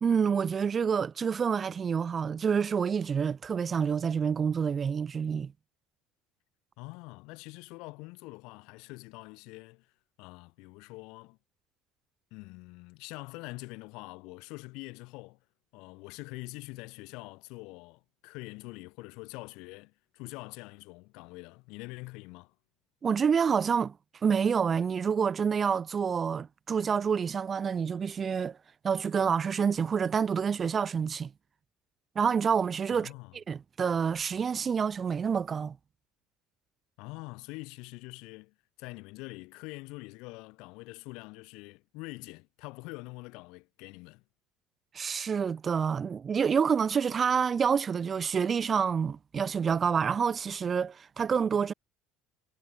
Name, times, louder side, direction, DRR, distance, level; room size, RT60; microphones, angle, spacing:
voice 1, 0.0-5.5 23.0-23.9 24.2-28.6 28.8-31.3 32.2-35.8 44.9-51.7, right 6 dB, 30° right, 0.3 m, -28 dB
voice 2, 6.8-9.9 10.2-11.4 12.3-15.4 15.7-22.5 32.9-33.4 37.0-44.2, left 26 dB, 75° left, 8.0 m, -45 dB
supercardioid pair, 100°, 0 cm